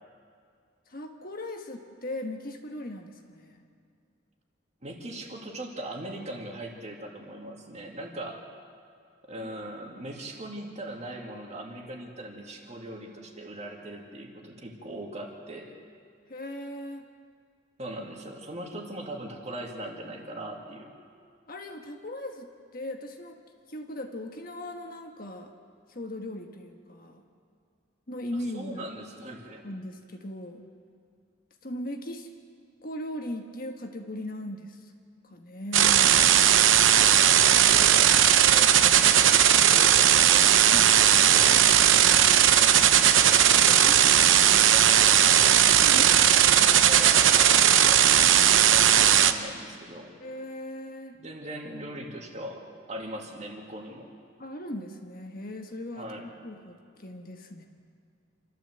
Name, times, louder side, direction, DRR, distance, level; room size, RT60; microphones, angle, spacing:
voice 1, 0.9-3.6 9.4-9.5 16.3-17.1 21.5-23.4 23.7-25.5 25.9-27.2 28.1-28.9 29.6-30.7 31.6-32.3 32.8-34.9 35.2-36.4 40.4-40.8 41.3-41.4 43.8-44.1 45.8-46.8 50.2-51.2 54.4-57.6, left 1 dB, 45° left, 4 dB, 1.4 m, -38 dB
voice 2, 4.8-8.4 9.3-15.7 17.8-20.9 28.3-29.6 37.7-45.6 46.0-50.1 51.2-54.1 56.0-56.3, right 1 dB, 35° right, 1 dB, 2.4 m, -40 dB
sound 1, 35.7-49.3, right 10 dB, 70° right, 0.8 m, -18 dB
28.0 x 13.0 x 7.8 m, 2.3 s
head